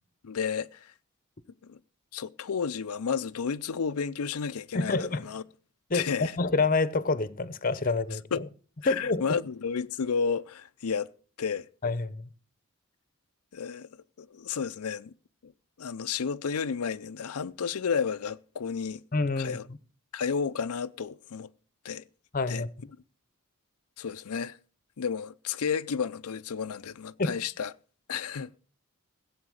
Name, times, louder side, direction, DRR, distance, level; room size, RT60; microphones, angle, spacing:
voice 1, 0.2-0.9 1.6-1.8 2.1-5.4 5.9-6.4 8.3-8.5 8.8-11.1 11.4-11.7 13.5-13.9 14.2-15.1 15.4-15.5 15.8-19.0 19.4-19.7 20.1-21.5 21.8-22.1 22.5-22.6 24.0-24.6 25.0-27.7 28.1-28.6, left 6 dB, 90° left, 0.5 m, -32 dB
voice 2, 4.7-5.2 5.9-8.4 8.9-9.4 11.8-12.3 19.1-19.6 22.3-22.7 27.2-27.3, left 3 dB, 40° left, 0.8 m, -27 dB
16.0 x 7.8 x 6.4 m
head